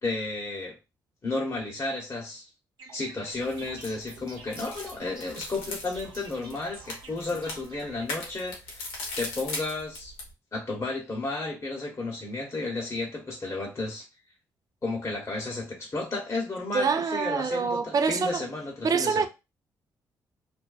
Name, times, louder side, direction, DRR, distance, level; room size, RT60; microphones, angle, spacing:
voice 1, 0.0-0.8 1.2-2.5 2.9-8.8 9.2-10.1 10.5-14.0 14.8-19.3, left 3 dB, 35° left, 1.0 m, -33 dB
sound 1, 2.8-8.1, right 4 dB, 65° right, 0.8 m, -48 dB
sound 2, 3.3-10.3, left 2 dB, 85° left, 0.7 m, -40 dB
voice 2, 16.7-18.5 18.8-19.3, right 5 dB, 45° right, 0.4 m, -25 dB
2.5 x 2.1 x 2.3 m
hypercardioid pair, 50°, 9 cm